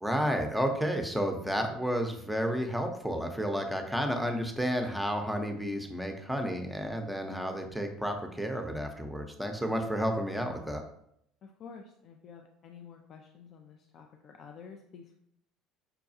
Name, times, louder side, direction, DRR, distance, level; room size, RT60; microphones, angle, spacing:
voice 1, 0.0-10.8, equal, ahead, 4 dB, 0.6 m, -31 dB
voice 2, 11.4-15.1, left 6 dB, 55° left, 3 dB, 0.3 m, -50 dB
5.5 x 2.2 x 2.6 m, 0.73 s
hypercardioid pair, 80°, 0 cm